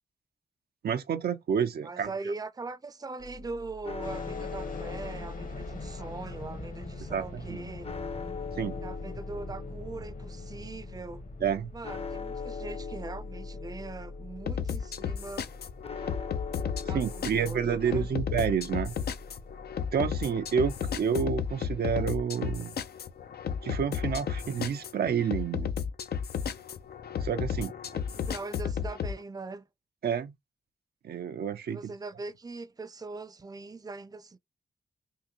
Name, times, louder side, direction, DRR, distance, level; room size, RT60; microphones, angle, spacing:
voice 1, 0.8-2.1 7.1-7.7 8.6-8.8 11.4-11.7 16.9-18.9 19.9-22.7 23.6-25.7 27.2-27.7 30.0-30.3 31.0-31.9, right 7 dB, 75° right, 0.6 m, -29 dB
voice 2, 1.8-7.9 8.8-11.2 11.7-15.5 16.8-18.1 27.9-29.7 31.7-34.4, right 3 dB, 25° right, 0.5 m, -41 dB
sound 1, 3.2-21.6, left 4 dB, 35° left, 0.7 m, -41 dB
sound 2, 4.0-20.7, left 2 dB, 55° left, 1.2 m, -46 dB
sound 3, 14.5-29.2, left 7 dB, 75° left, 0.6 m, -33 dB
3.8 x 2.6 x 2.8 m
cardioid pair, 50°, 17 cm